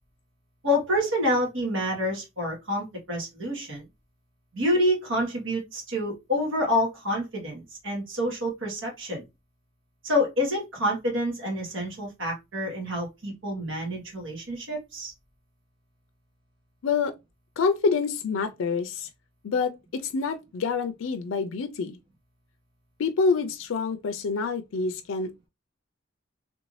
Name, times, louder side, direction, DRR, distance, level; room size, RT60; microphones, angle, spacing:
voice 1, 0.6-3.8 4.5-9.2 10.0-15.1, left 1 dB, 75° right, 1.5 m, -27 dB
voice 2, 16.8-17.1 17.6-19.1 19.4-22.0 23.0-25.5, left 4 dB, 90° left, 0.4 m, -27 dB
3.3 x 2.6 x 3.1 m
head